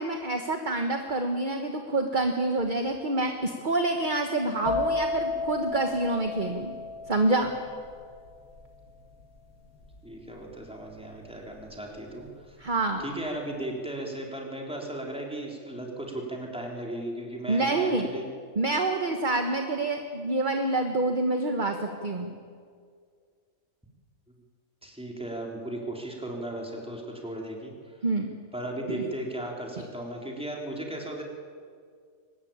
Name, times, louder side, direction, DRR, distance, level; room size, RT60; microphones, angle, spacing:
voice 1, 0.0-6.7 7.1-7.5 12.6-13.0 17.5-18.1 18.6-22.3 28.0-28.3 28.9-29.1, right 2 dB, 35° right, 5 dB, 1.5 m, -27 dB
sound 1, 4.7-12.2 12.5-13.0, left 3 dB, 90° left, 2.7 m, -34 dB
voice 2, 10.0-12.6 13.0-18.3 24.8-28.0 28.5-31.2, right 1 dB, 5° right, -1 dB, 3.8 m, -36 dB
23.0 x 20.0 x 8.9 m, 2.1 s
omnidirectional pair, 1.5 m